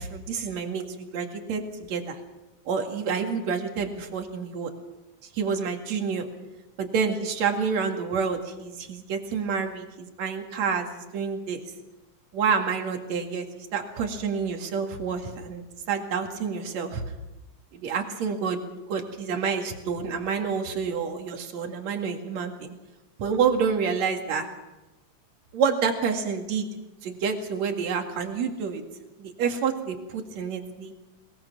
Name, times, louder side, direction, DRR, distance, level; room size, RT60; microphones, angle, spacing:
voice 1, 0.0-1.6 1.9-2.2 2.7-4.7 5.3-6.3 6.8-11.6 12.3-17.0 17.7-18.6 18.9-22.7 23.2-24.5 25.5-26.7 27.0-28.8 29.2-30.9, right 6 dB, 65° right, 4 dB, 3.3 m, -28 dB
22.0 x 21.5 x 6.0 m, 1.0 s
omnidirectional pair, 3.4 m